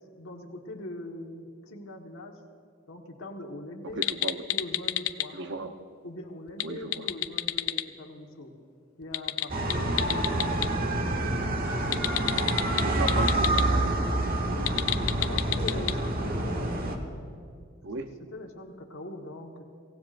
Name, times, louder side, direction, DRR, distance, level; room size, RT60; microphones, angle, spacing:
voice 1, 0.1-2.3 2.9-4.1 4.5-5.4 6.0-8.5 9.0-11.6 12.1-12.7 14.4-14.9 15.2-16.8 18.3-19.6, left 1 dB, 70° left, 0 dB, 1.5 m, -42 dB
sound 1, 3.9-5.3 6.5-7.8 9.0-10.7 11.9-13.6 14.6-15.9, left 13 dB, 85° left, 0.5 m, -29 dB
voice 2, 4.0-4.4 5.3-5.7 6.6-7.1 9.7-10.0 12.8-14.0 17.8-18.1, right 2 dB, 60° right, 7 dB, 0.8 m, -35 dB
sound 2, 9.5-17.0, right 1 dB, 45° right, 1.2 m, -27 dB
23.5 x 17.0 x 2.6 m, 2.3 s
head